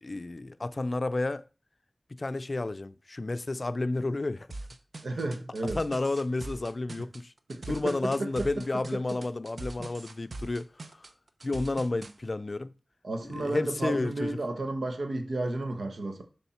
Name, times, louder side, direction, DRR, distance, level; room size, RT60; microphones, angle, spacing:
voice 1, 0.0-1.4 2.1-4.5 5.7-7.3 7.7-11.1 11.4-12.7 13.3-14.4, left 2 dB, 45° left, 0.4 m, -31 dB
sound 1, 4.5-12.1, right 2 dB, 65° right, 0.7 m, -42 dB
voice 2, 5.0-5.8 7.5-8.5 13.0-16.2, right 2 dB, 85° right, 1.2 m, -33 dB
7.1 x 3.6 x 5.7 m
wide cardioid pair, 70°, 0 cm